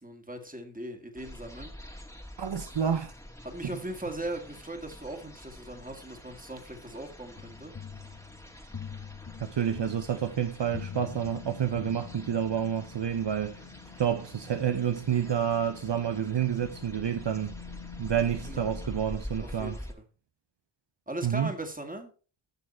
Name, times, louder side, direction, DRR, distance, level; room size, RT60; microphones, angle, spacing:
voice 1, 0.0-1.7 3.4-7.7 9.5-9.6 18.5-18.7 19.4-20.0 21.1-22.1, right 1 dB, 15° right, 2.1 m, -39 dB
sound 1, 1.2-19.9, left 1 dB, 5° left, 1.8 m, -46 dB
voice 2, 2.4-3.1 3.6-3.7 9.4-13.6 14.0-17.5 18.0-19.8 21.2-21.5, right 9 dB, 60° right, 0.8 m, -29 dB
sound 2, 7.4-12.6, left 7 dB, 40° left, 1.0 m, -44 dB
sound 3, 10.6-19.0, left 7 dB, 60° left, 2.2 m, -48 dB
9.2 x 6.5 x 4.4 m
wide cardioid pair, 50°, 49 cm